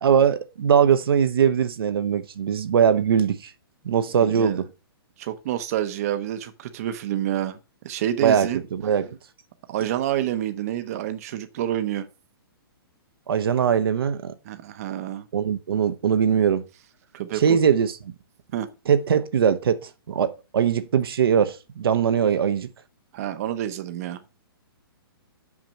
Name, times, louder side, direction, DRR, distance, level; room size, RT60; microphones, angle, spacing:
voice 1, 0.0-3.5 3.8-4.7 8.2-9.2 13.3-14.3 15.3-16.6 17.3-17.9 18.9-22.7, right 8 dB, 70° right, 0.9 m, -21 dB
voice 2, 4.2-4.6 5.2-7.6 7.8-8.6 9.7-12.1 14.4-15.3 17.1-17.6 18.5-18.7 23.1-24.2, right 12 dB, 40° right, 0.8 m, -28 dB
6.2 x 5.8 x 5.3 m
hypercardioid pair, 160°, 13 cm